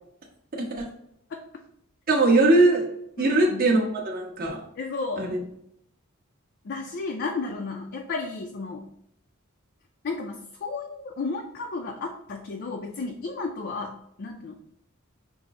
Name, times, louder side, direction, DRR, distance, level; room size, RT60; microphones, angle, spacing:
voice 1, 0.6-0.9 2.1-2.9 3.2-4.6 5.2-5.4, right 2 dB, 45° right, -3 dB, 1.2 m, -21 dB
voice 2, 3.2-3.7 4.8-5.3 6.6-8.9 10.0-14.6, left 3 dB, 50° left, 2 dB, 0.4 m, -33 dB
5.9 x 2.1 x 3.6 m, 0.72 s
head